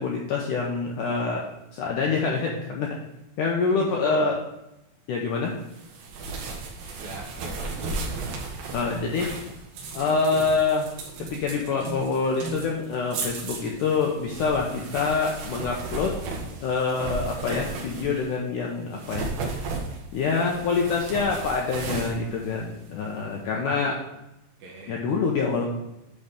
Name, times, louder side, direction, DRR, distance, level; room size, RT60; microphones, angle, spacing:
voice 1, 0.0-1.4 1.7-2.9 3.4-4.4 5.1-5.5 8.7-9.3 9.9-10.9 11.3-16.1 16.6-19.3 20.1-24.0 24.9-25.6, left 4 dB, 80° left, -1 dB, 1.9 m, -26 dB
voice 2, 3.7-4.3 7.0-8.2 24.6-25.0, right 3 dB, 70° right, 1 dB, 2.9 m, -39 dB
sound 1, 5.7-18.3 18.9-23.2, right 3 dB, 90° right, 3.7 m, -35 dB
10.5 x 4.3 x 5.2 m, 0.91 s
omnidirectional pair, 4.7 m